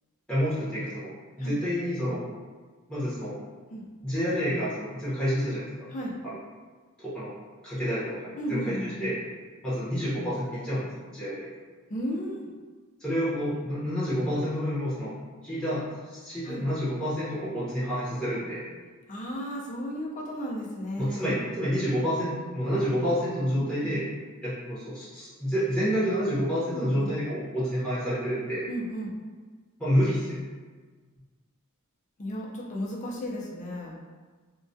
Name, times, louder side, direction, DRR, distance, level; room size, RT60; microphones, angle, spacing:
voice 1, 0.3-2.2 2.9-3.3 4.0-5.7 6.2-6.4 7.0-7.3 7.6-8.7 9.0-9.2 9.6-10.9 11.1-11.5 13.0-15.1 15.4-18.6 21.0-24.0 24.4-28.6 29.8-30.4, equal, 5° left, -12 dB, 0.7 m, -28 dB
voice 2, 8.4-9.1 11.9-12.5 16.4-16.7 19.1-21.4 23.6-23.9 26.7-27.1 28.7-29.1 32.2-34.0, equal, 35° left, -3 dB, 0.4 m, -34 dB
2.2 x 2.1 x 2.6 m, 1.4 s
head